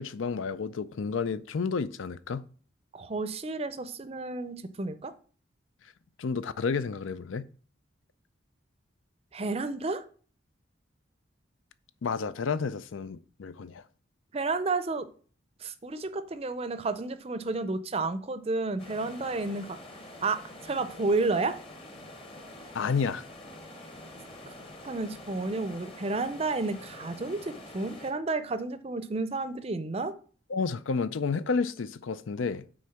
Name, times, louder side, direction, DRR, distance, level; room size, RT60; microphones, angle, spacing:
voice 1, 0.0-2.4 6.2-7.4 12.0-13.8 22.7-23.2 30.5-32.6, left 5 dB, 85° left, 0.5 m, -31 dB
voice 2, 2.9-5.1 9.3-10.0 14.3-15.1 15.6-19.8 20.2-21.6 24.8-30.2, right 3 dB, 30° right, 0.5 m, -31 dB
sound 1, 18.8-28.1, left 1 dB, 30° left, 1.0 m, -46 dB
6.3 x 4.4 x 5.8 m
head